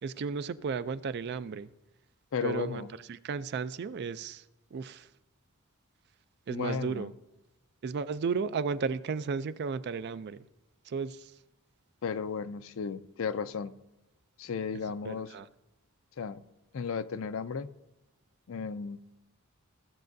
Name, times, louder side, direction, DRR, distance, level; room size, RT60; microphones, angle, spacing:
voice 1, 0.0-1.7 2.4-4.4 4.7-5.1 6.5-7.1 7.8-10.4 10.9-11.3 15.0-15.5, right 5 dB, 50° right, 0.4 m, -34 dB
voice 2, 2.3-2.9 6.5-7.1 12.0-13.7 14.4-15.3 16.2-16.4 16.7-17.7 18.5-19.0, left 5 dB, 65° left, 0.4 m, -34 dB
15.5 x 7.5 x 2.6 m
head